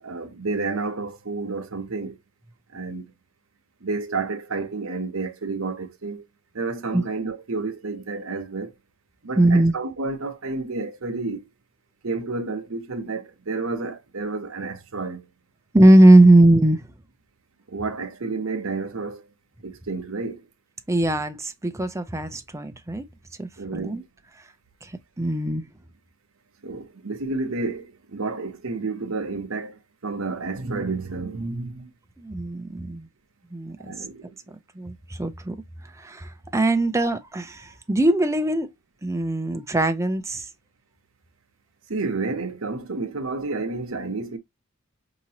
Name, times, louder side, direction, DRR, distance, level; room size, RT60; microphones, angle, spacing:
voice 1, 0.0-2.2 2.7-3.1 3.8-6.3 6.5-8.7 9.2-11.5 12.0-15.3 17.7-19.3 19.6-20.5 23.6-24.1 26.6-31.9 33.8-34.4 41.9-44.4, right 3 dB, 70° right, 0.9 m, -30 dB
voice 2, 9.4-9.7 15.7-16.8 20.9-23.1 23.4-24.0 24.8-25.7 32.2-33.1 33.5-33.8 34.5-35.6 36.0-38.7 39.0-40.5, right 1 dB, 15° right, 0.5 m, -19 dB
5.0 x 3.0 x 2.8 m
head